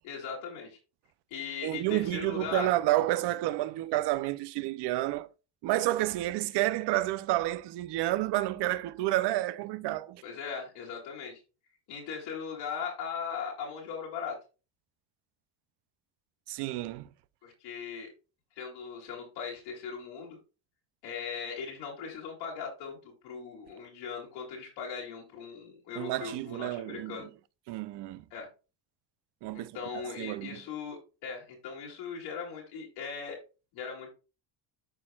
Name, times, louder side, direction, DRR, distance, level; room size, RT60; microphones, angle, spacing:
voice 1, 0.0-0.8 1.3-2.7 10.2-11.4 11.9-14.4 17.4-18.1 18.6-20.4 21.0-27.3 28.3-28.5 29.5-33.4 33.7-34.1, left 6 dB, 80° left, 2.7 m, -39 dB
voice 2, 1.6-5.3 5.6-10.2 16.5-17.1 26.0-27.3 27.7-28.2 29.4-30.6, right 16 dB, 65° right, 0.6 m, -30 dB
12.5 x 4.4 x 2.3 m
cardioid pair, 110°, 45 cm